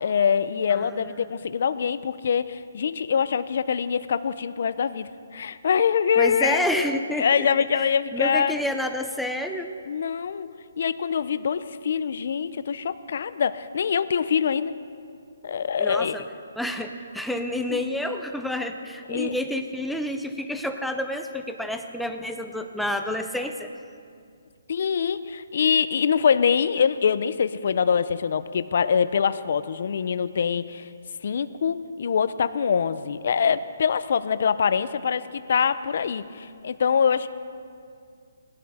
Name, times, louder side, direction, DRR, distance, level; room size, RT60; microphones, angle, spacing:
voice 1, 0.0-6.6 7.2-8.6 9.9-10.5 10.8-14.8 15.4-16.2 17.7-17.8 19.1-19.3 24.7-30.9 31.2-37.3, left 7 dB, 50° left, 13 dB, 0.5 m, -24 dB
voice 2, 0.7-1.1 6.2-7.5 7.7-9.7 15.8-16.2 16.6-23.7, left 1 dB, ahead, 5 dB, 0.5 m, -29 dB
18.5 x 12.5 x 4.2 m, 2.3 s
hypercardioid pair, 170°, 0 cm